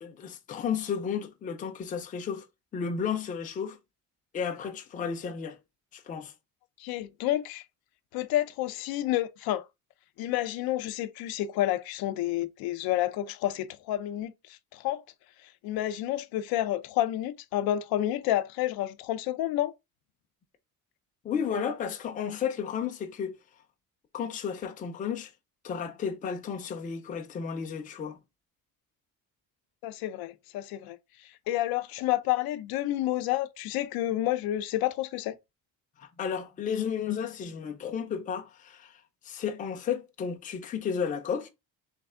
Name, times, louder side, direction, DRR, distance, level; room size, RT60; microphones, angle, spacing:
voice 1, 0.0-2.5 2.7-3.8 4.3-5.6 5.9-6.3 21.2-23.3 24.1-25.3 25.6-28.2 36.0-38.9 39.2-41.5, left 7 dB, 25° left, 0.5 m, -33 dB
voice 2, 6.8-7.6 8.1-9.6 10.2-15.0 15.6-19.7 29.8-31.0 31.5-35.4, left 14 dB, 85° left, 0.6 m, -29 dB
3.3 x 3.3 x 3.6 m
cardioid pair, 180°, 35 cm